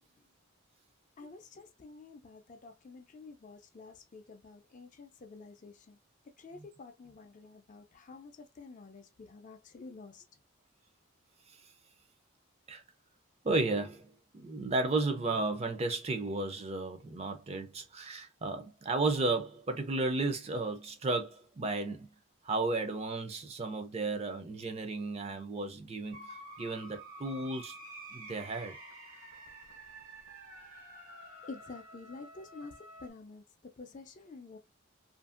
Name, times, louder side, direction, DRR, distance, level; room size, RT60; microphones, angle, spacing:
voice 1, 1.2-6.0 6.4-10.2 31.5-33.4 33.8-34.6, left 3 dB, 35° left, 0.4 m, -49 dB
voice 2, 13.4-14.1 14.3-22.1 22.4-27.8 28.1-28.8, right 3 dB, 30° right, 0.4 m, -33 dB
sound 1, 26.1-33.1, right 1 dB, 75° right, 1.0 m, -50 dB
2.7 x 2.5 x 2.4 m
head